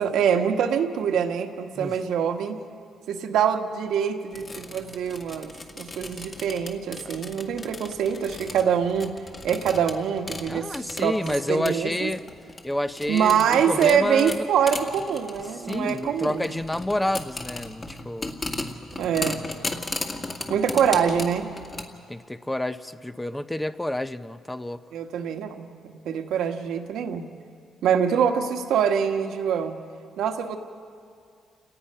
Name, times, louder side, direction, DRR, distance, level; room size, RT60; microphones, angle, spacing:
voice 1, 0.0-2.6 3.1-9.1 9.4-12.1 13.1-16.5 19.0-19.5 20.5-21.5 24.9-27.3 27.8-29.8 30.2-30.6, right 8 dB, 80° right, 4 dB, 1.5 m, -24 dB
sound 1, 4.3-21.8, left 2 dB, 30° left, 2.0 m, -36 dB
voice 2, 10.5-12.2 12.6-14.5 15.5-18.4 22.1-24.8, left 1 dB, 10° left, 11 dB, 0.6 m, -29 dB
29.5 x 18.5 x 5.7 m, 2.2 s
cardioid pair, 90°, 0 cm